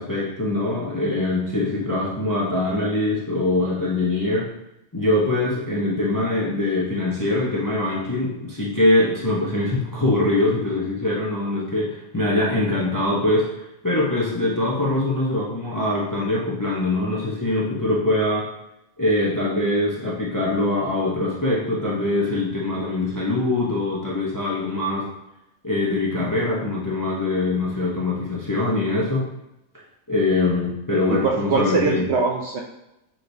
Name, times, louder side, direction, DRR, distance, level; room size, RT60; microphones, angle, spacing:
voice 1, 0.0-4.5 4.9-13.6 13.8-18.5 19.0-25.1 25.6-29.3 30.1-32.0, left 2 dB, 20° left, -5 dB, 0.5 m, -23 dB
voice 2, 31.1-32.6, right 4 dB, 65° right, -1 dB, 0.7 m, -22 dB
6.4 x 3.0 x 2.7 m, 0.89 s
omnidirectional pair, 1.5 m